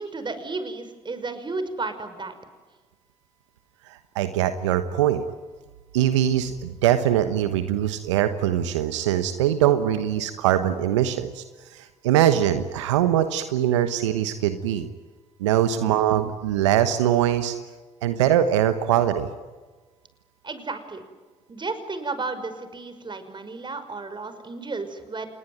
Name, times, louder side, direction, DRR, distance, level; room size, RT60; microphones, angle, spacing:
voice 1, 0.0-2.3 15.7-16.0 20.4-21.0 21.5-25.3, right 3 dB, 30° right, 10 dB, 5.6 m, -33 dB
voice 2, 3.9-5.2 5.9-11.4 11.7-14.9 15.4-17.5 18.0-19.3, right 11 dB, 85° right, 10 dB, 1.2 m, -22 dB
28.0 x 21.0 x 9.3 m, 1.3 s
hypercardioid pair, 50°, 15 cm